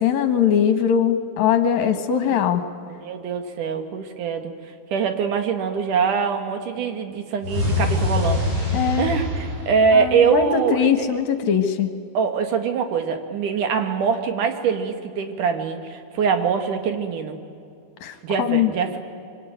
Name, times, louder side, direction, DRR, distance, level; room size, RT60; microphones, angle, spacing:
voice 1, 0.0-2.6 8.7-9.1 9.9-11.9 18.0-18.7, left 8 dB, 65° left, 8 dB, 2.5 m, -21 dB
voice 2, 2.8-4.5 4.9-8.5 9.0-11.1 12.1-17.4 18.2-19.0, right 6 dB, 80° right, 6 dB, 3.3 m, -23 dB
sound 1, 7.4-10.6, left 2 dB, 45° right, 8.7 m, -24 dB
25.0 x 24.0 x 9.3 m, 2.4 s
omnidirectional pair, 3.6 m